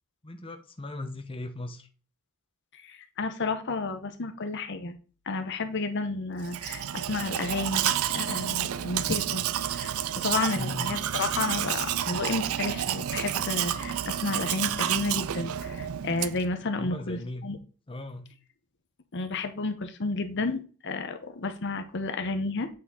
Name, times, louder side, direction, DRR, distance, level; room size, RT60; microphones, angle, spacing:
voice 1, 0.2-1.9 10.5-10.9 16.8-17.4 17.9-18.3, left 2 dB, 25° left, 0.8 m, -37 dB
voice 2, 2.7-4.9 5.3-9.4 9.7-17.6 19.1-22.7, left 3 dB, 55° left, 0.8 m, -31 dB
Domestic sounds home sounds, 6.4-16.5, right 10 dB, 85° right, 0.4 m, -30 dB
8.5 x 4.5 x 3.7 m
head